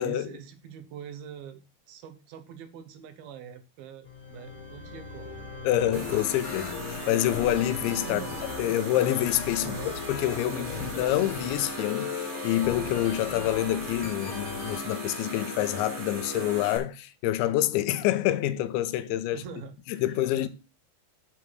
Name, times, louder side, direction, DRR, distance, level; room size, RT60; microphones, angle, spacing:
voice 1, 0.0-1.6 1.9-5.4 8.0-8.8 9.6-10.0 10.4-11.2 19.3-20.5, right 7 dB, 70° right, 2.5 m, -43 dB
sound 1, 4.0-14.8, left 6 dB, 60° left, 2.0 m, -39 dB
voice 2, 5.6-8.2 8.6-9.7 10.1-19.4 19.9-20.5, left 13 dB, 90° left, 3.0 m, -27 dB
sound 2, 5.9-16.8, equal, 20° right, 2.2 m, -37 dB
9.8 x 4.4 x 6.2 m
omnidirectional pair, 5.2 m